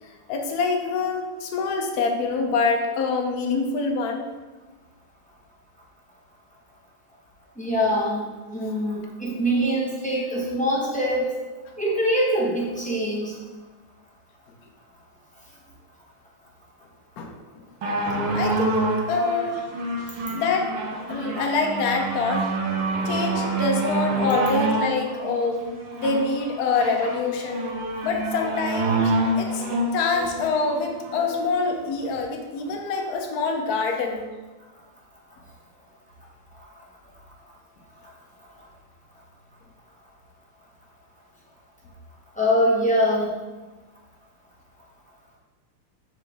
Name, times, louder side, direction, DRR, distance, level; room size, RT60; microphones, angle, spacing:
voice 1, 0.3-4.2 17.2-17.6 18.3-19.7 20.3-20.8 21.1-22.5 23.0-25.7 25.9-27.7 28.0-29.6 29.9-34.3, left 4 dB, 65° left, 2 dB, 1.0 m, -25 dB
voice 2, 7.6-8.2 8.5-11.3 11.8-13.4 42.4-43.3, equal, 5° left, -6 dB, 0.7 m, -23 dB
sound 1, 17.8-31.4 32.1-32.2, right 2 dB, 90° right, 1.8 m, -27 dB
5.5 x 5.0 x 3.5 m, 1.2 s
omnidirectional pair, 2.4 m